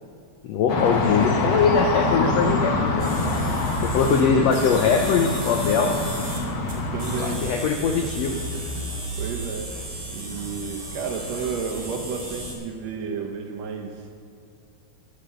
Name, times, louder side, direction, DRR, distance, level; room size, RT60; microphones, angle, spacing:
voice 1, 0.4-3.1 3.8-5.9 7.2-8.4, left 6 dB, 80° left, 4 dB, 1.5 m, -22 dB
sound 1, 0.7-7.4, left 2 dB, 55° left, 1.5 m, -25 dB
voice 2, 2.2-2.7 4.2-4.5 6.8-7.5 7.9-8.0 8.5-14.1, right 5 dB, 70° right, 3 dB, 1.8 m, -32 dB
sound 2, 3.0-12.5, right 1 dB, 15° right, 1.6 m, -33 dB
11.5 x 9.2 x 6.8 m, 2.4 s
omnidirectional pair, 3.7 m